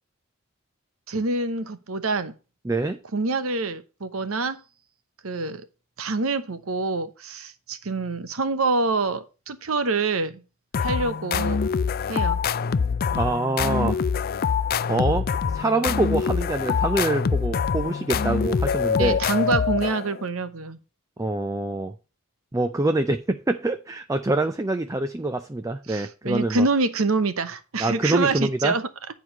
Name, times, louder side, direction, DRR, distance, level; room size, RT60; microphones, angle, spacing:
voice 1, 1.1-2.3 3.1-4.6 5.2-5.6 6.0-10.4 10.8-11.6 12.1-12.4 19.0-20.8 25.9-28.9, right 3 dB, 75° right, 12 dB, 1.0 m, -26 dB
voice 2, 2.6-3.0 13.1-14.0 14.9-15.3 15.5-19.2 21.2-21.9 22.5-26.7 27.8-28.7, right 2 dB, 15° right, 9 dB, 0.5 m, -25 dB
sound 1, 10.7-20.2, left 6 dB, 45° left, 0.4 m, -25 dB
9.9 x 4.7 x 5.8 m, 0.32 s
head